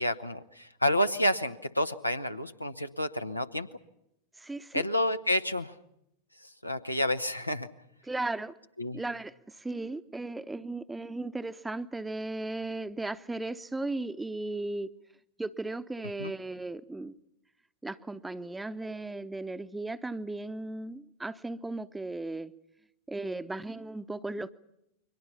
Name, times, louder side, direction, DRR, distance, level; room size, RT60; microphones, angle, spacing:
voice 1, 0.0-3.7 4.7-5.7 6.6-7.7 8.8-9.0 16.2-16.3, left 1 dB, 90° left, 8 dB, 1.0 m, -29 dB
voice 2, 4.4-4.9 8.0-8.6 8.9-14.9 15.4-17.1 17.8-22.5 23.1-24.5, right 2 dB, 10° right, 13 dB, 0.9 m, -36 dB
29.5 x 23.0 x 5.7 m, 0.82 s
figure-of-eight pair, 90°, 0 cm